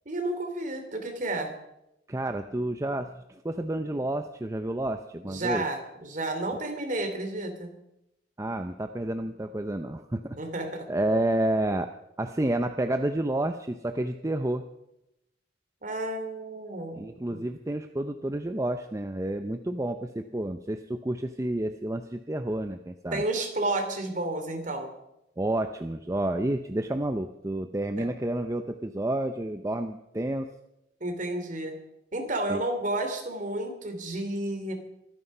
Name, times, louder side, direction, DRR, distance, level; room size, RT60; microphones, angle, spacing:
voice 1, 0.0-1.5 5.3-7.7 10.4-10.8 15.8-17.0 17.3-17.4 23.1-24.9 28.0-28.1 31.0-31.7 32.1-34.7, right 2 dB, 45° right, 5 dB, 2.9 m, -31 dB
voice 2, 2.1-5.6 8.4-11.9 12.2-14.7 16.9-23.2 25.4-30.5 32.5-32.6, right 1 dB, 15° right, 7 dB, 0.5 m, -30 dB
24.0 x 9.7 x 5.5 m, 0.87 s
head